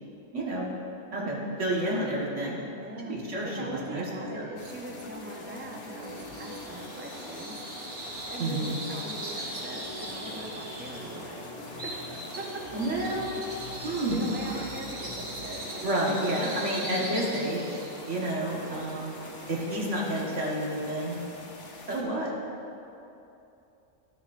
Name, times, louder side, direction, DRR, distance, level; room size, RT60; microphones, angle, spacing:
voice 1, 0.3-0.7 1.1-2.6 3.1-4.1 4.3-4.5 8.4-8.8 12.7-13.3 13.8-14.3 15.8-17.8 18.1-19.2 19.5-21.2 21.9-22.3, right 1 dB, 70° right, -4 dB, 1.7 m, -30 dB
voice 2, 2.7-7.6 8.3-11.4 11.8-12.4 14.1-17.2, right 2 dB, 20° right, 1 dB, 0.3 m, -42 dB
Organ, 3.6-15.7, left 2 dB, 75° left, 1.4 m, -45 dB
sound 1, 4.6-22.0, left 2 dB, 55° left, 1.1 m, -47 dB
Bird vocalization bird call bird song, 5.9-20.7, right 1 dB, 50° right, 1.6 m, -40 dB
12.5 x 6.8 x 2.5 m, 2.8 s
omnidirectional pair, 1.3 m